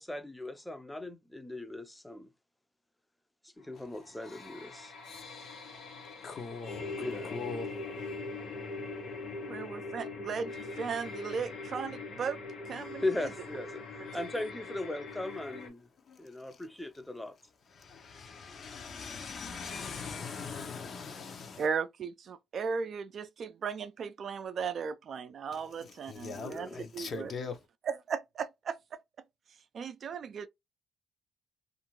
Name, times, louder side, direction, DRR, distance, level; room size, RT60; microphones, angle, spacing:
voice 1, 0.0-2.3 3.4-4.9 7.0-7.4 13.0-15.9 16.2-17.4 26.4-26.9, left 2 dB, 5° left, 0.5 m, -38 dB
sound 1, 3.9-15.7, left 3 dB, 80° left, 1.0 m, -42 dB
voice 2, 5.8-7.8 16.1-16.2 17.7-21.7 25.5-27.6, left 5 dB, 55° left, 0.7 m, -41 dB
voice 3, 9.5-12.4 12.7-13.0 14.0-14.1 21.6-27.3 27.9-29.0 29.7-30.5, right 6 dB, 55° right, 0.4 m, -36 dB
2.5 x 2.3 x 3.1 m
cardioid pair, 90°, 0 cm